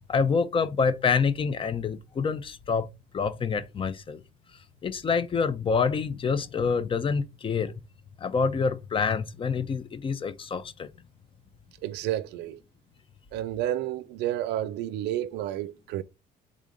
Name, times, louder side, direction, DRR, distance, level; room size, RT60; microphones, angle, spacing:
voice 1, 0.1-2.9 3.1-4.2 4.8-7.7 8.2-10.9, left 5 dB, 30° left, 0.5 m, -27 dB
voice 2, 11.8-12.6 13.3-16.0, right 12 dB, 85° right, 0.5 m, -30 dB
3.7 x 3.6 x 3.9 m
cardioid pair, 110°, 17 cm